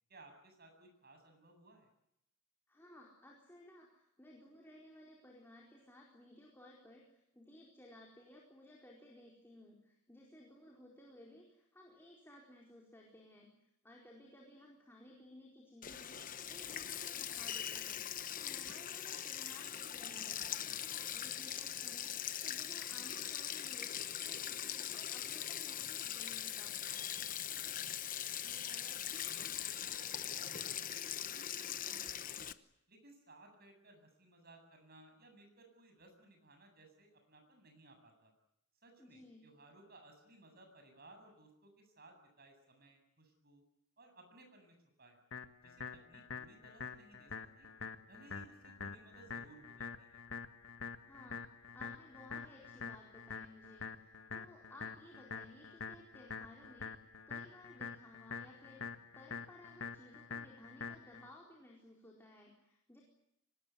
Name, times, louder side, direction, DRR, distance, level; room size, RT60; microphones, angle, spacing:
voice 1, 0.1-1.9 27.0-27.9 28.2-32.5 32.9-38.3 38.8-43.6 44.0-45.2 45.6-47.7 48.1-50.2, right 2 dB, 45° right, 5 dB, 7.9 m, -61 dB
voice 2, 2.7-13.5 13.8-18.1 18.3-20.8 21.1-22.2 22.4-26.8 39.0-39.5 51.0-63.0, left 1 dB, 10° left, -2 dB, 4.4 m, -58 dB
Sink (filling or washing), 15.8-32.5, left 10 dB, 40° left, 1.0 m, -41 dB
sound 1, 45.3-61.3, left 5 dB, 60° left, 1.6 m, -46 dB
24.5 x 20.5 x 9.6 m, 0.80 s
head